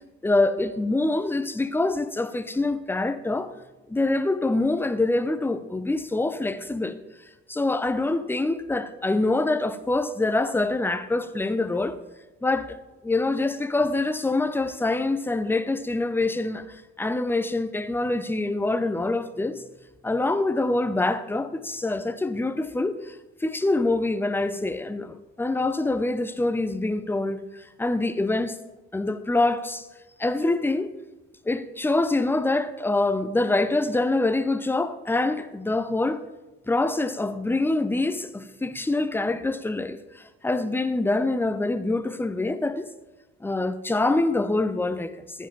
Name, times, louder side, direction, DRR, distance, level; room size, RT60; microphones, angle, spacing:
voice 1, 0.2-3.5 3.9-7.0 7.5-12.0 12.4-12.8 13.0-19.6 20.0-28.6 28.9-29.9 30.2-30.9 31.4-36.2 36.7-42.9 43.4-45.5, left 2 dB, 5° left, 0.6 m, -25 dB
14.5 x 5.3 x 5.4 m
figure-of-eight pair, 50°, 38 cm